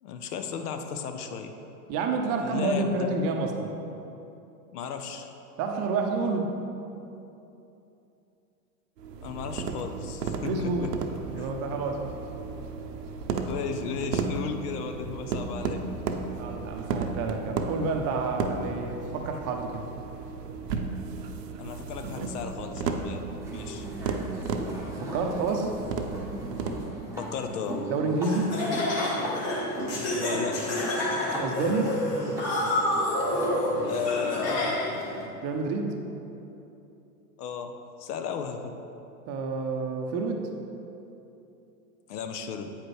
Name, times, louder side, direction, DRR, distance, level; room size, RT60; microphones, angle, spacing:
voice 1, 0.0-1.5 2.4-3.2 4.7-5.3 9.2-10.9 11.3-11.5 13.4-15.9 21.6-23.2 23.5-23.9 27.2-27.9 30.2-30.7 33.8-34.8 37.4-38.7 42.1-42.8, left 6 dB, 70° left, 6 dB, 0.8 m, -35 dB
voice 2, 1.9-3.7 5.6-6.5 10.4-10.9 11.3-12.2 16.3-19.9 25.0-25.7 27.9-28.6 31.4-32.0 35.4-35.9 39.3-40.5, right 3 dB, 30° right, 3 dB, 0.6 m, -29 dB
sound 1, 9.0-26.9, right 4 dB, 85° right, 0.7 m, -34 dB
sound 2, 23.4-35.3, right 1 dB, 5° right, 1.0 m, -38 dB
Laughter, 28.2-35.0, left 1 dB, 30° left, 1.5 m, -28 dB
8.7 x 4.9 x 3.1 m, 2.9 s
hypercardioid pair, 115°, 48 cm